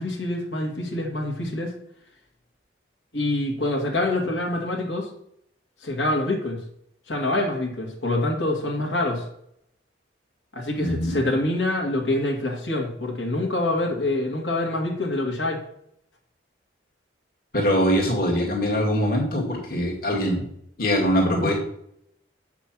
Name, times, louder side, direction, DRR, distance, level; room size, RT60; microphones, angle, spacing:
voice 1, 0.0-1.7 3.1-5.1 5.8-6.6 7.1-9.3 10.5-15.6 19.7-19.8, left 2 dB, 75° left, 0 dB, 2.1 m, -26 dB
voice 2, 10.8-11.2 17.5-20.5 20.8-21.5, equal, 50° left, -1 dB, 2.1 m, -22 dB
7.7 x 5.9 x 6.0 m, 0.71 s
head